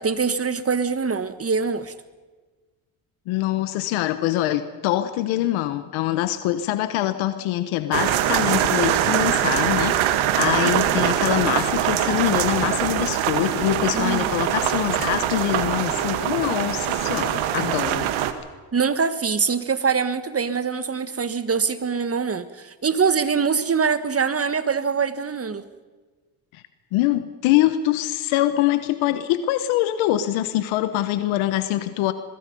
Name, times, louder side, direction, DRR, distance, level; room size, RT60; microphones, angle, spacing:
voice 1, 0.0-1.9 13.9-14.3 18.7-25.6, right 5 dB, 30° right, 12 dB, 1.6 m, -23 dB
voice 2, 3.3-18.1 26.5-26.6 26.9-32.1, left 14 dB, 85° left, 11 dB, 1.2 m, -24 dB
sound 1, 7.9-18.3, right 11 dB, 80° right, 1.7 m, -23 dB
23.0 x 22.0 x 5.4 m, 1.3 s
supercardioid pair, 75°, 47 cm